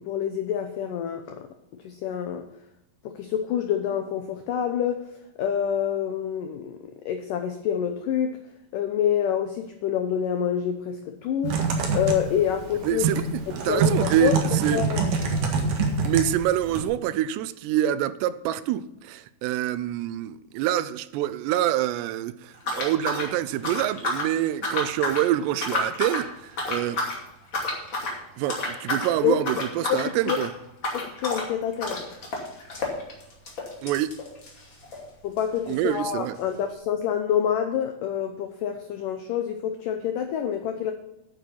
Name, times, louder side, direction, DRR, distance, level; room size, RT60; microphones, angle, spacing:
voice 1, 0.0-1.5 1.8-2.4 3.0-5.0 5.4-6.8 7.1-8.4 8.7-11.6 11.9-13.1 13.7-14.4 14.7-15.1 29.2-29.5 29.9-30.4 30.9-32.0 35.2-40.9, left 9 dB, 80° left, 1.9 m, -27 dB
Typing, 11.4-16.8, right 4 dB, 55° right, 2.9 m, -26 dB
voice 2, 12.9-14.8 16.0-27.0 28.4-30.5 33.8-34.2 35.7-36.4, right 12 dB, 85° right, 2.7 m, -26 dB
sound 1, 22.6-24.3 24.6-25.3 25.6-26.3 26.6-27.2 27.5-28.2 28.5-29.1 29.4-35.1 35.4-35.5 35.7-35.8 36.4-36.5, left 2 dB, 35° left, 2.6 m, -30 dB
9.9 x 9.2 x 5.5 m
omnidirectional pair, 4.9 m